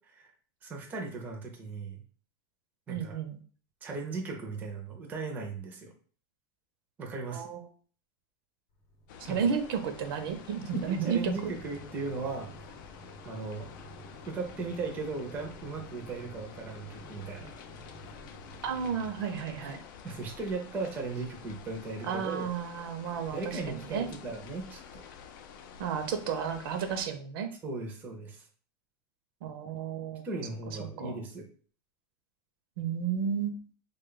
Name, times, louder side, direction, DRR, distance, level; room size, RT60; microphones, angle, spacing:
voice 1, 0.6-2.0 2.9-3.2 3.8-5.9 7.0-7.5 9.3-9.5 10.7-12.5 13.2-13.7 14.3-17.5 20.0-22.5 23.3-25.0 27.6-28.5 30.2-31.5, right 3 dB, 15° right, 1 dB, 0.5 m, -37 dB
voice 2, 2.9-3.4 7.3-7.6 9.2-11.5 18.6-19.8 22.0-24.1 25.8-27.5 29.4-30.2 30.7-31.2 32.8-33.7, right 7 dB, 70° right, 7 dB, 0.6 m, -32 dB
Mechanisms, 8.7-19.7, equal, 40° left, 0.8 m, -51 dB
sound 1, 9.1-27.1, left 7 dB, 55° left, 0.4 m, -50 dB
3.2 x 2.2 x 3.8 m, 0.43 s
supercardioid pair, 175°, 13 cm